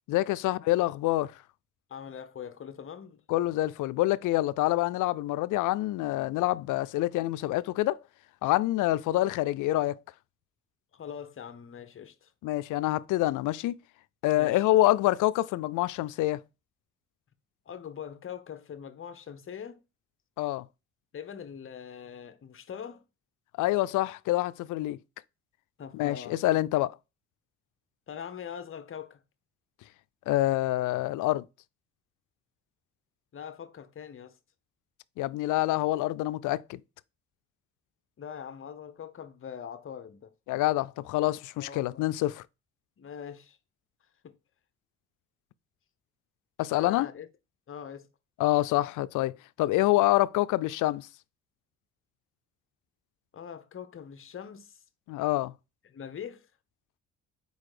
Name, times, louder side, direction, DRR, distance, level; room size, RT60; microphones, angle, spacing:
voice 1, 0.1-1.3 3.3-8.0 8.4-10.0 12.4-13.8 14.2-16.4 20.4-20.7 23.6-25.0 25.9-27.0 30.3-31.4 35.2-36.8 40.5-42.4 46.6-47.1 48.4-49.3 49.6-51.1 55.1-55.5, left 16 dB, 80° left, 0.5 m, -26 dB
voice 2, 1.9-3.2 10.9-12.3 14.4-14.6 17.7-19.8 21.1-23.0 25.8-26.4 28.1-29.2 33.3-34.4 38.2-40.3 41.6-42.0 43.0-43.6 44.2-44.3 46.7-47.3 47.7-48.1 53.3-54.8 55.8-56.5, left 8 dB, 45° left, 1.0 m, -42 dB
4.9 x 4.0 x 4.9 m
cardioid pair, 90°, 30 cm